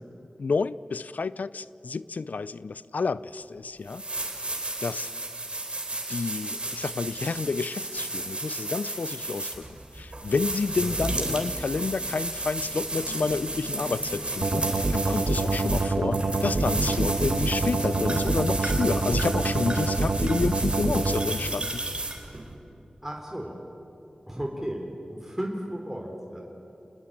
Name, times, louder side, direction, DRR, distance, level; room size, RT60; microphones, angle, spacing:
voice 1, 0.4-4.0 4.8-5.1 6.1-21.8, left 4 dB, 85° left, 17 dB, 0.5 m, -30 dB
sound 1, 3.4-3.5 3.9-22.5, right 2 dB, 40° right, 4.1 m, -33 dB
voice 2, 10.8-11.4 23.0-23.6 24.3-26.4, equal, 10° right, 0 dB, 3.5 m, -35 dB
sound 2, 14.4-21.3, right 3 dB, 70° right, 1.3 m, -26 dB
28.0 x 19.5 x 8.6 m, 2.9 s
cardioid pair, 45°, 3 cm